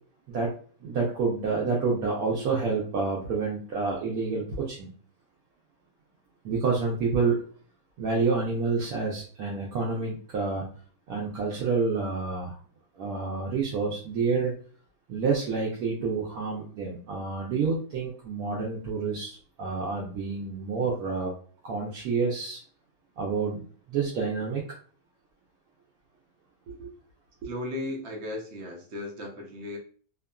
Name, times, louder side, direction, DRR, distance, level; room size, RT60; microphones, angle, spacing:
voice 1, 0.8-4.9 6.4-7.4 8.0-10.6 11.1-12.6 13.0-14.5 15.1-21.3 21.6-22.6 23.2-23.6 23.9-24.6 26.7-26.9, right 4 dB, 75° right, -3 dB, 1.1 m, -28 dB
voice 2, 27.4-29.8, left 2 dB, 60° right, 0 dB, 0.8 m, -36 dB
2.8 x 2.4 x 2.2 m, 0.43 s
omnidirectional pair, 1.6 m